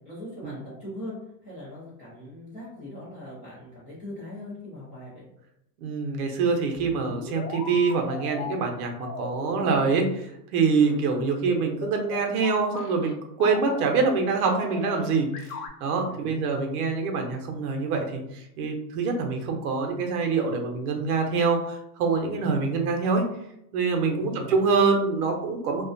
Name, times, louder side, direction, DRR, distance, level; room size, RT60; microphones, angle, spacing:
voice 1, 0.0-5.2 16.1-16.7 22.3-22.6 24.2-24.6, left 1 dB, 15° left, -9 dB, 0.4 m, -40 dB
voice 2, 5.8-23.2 23.7-25.9, right 4 dB, 65° right, 3 dB, 0.7 m, -25 dB
sound 1, 6.7-8.5 9.0-10.0 10.8-13.1 13.4-14.1 14.4-15.7, left 4 dB, 65° left, 0.6 m, -38 dB
2.3 x 2.2 x 2.5 m, 0.78 s
supercardioid pair, 150°, 49 cm